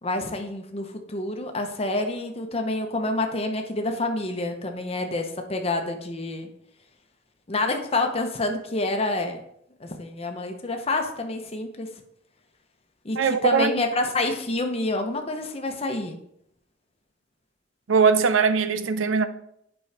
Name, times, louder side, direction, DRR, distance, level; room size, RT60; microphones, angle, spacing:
voice 1, 0.0-6.5 7.5-9.4 9.8-11.9 13.0-16.2, left 2 dB, 30° left, 0.8 m, -28 dB
voice 2, 13.2-13.7 17.9-19.3, right 5 dB, 90° right, 0.5 m, -20 dB
8.2 x 5.4 x 3.4 m
head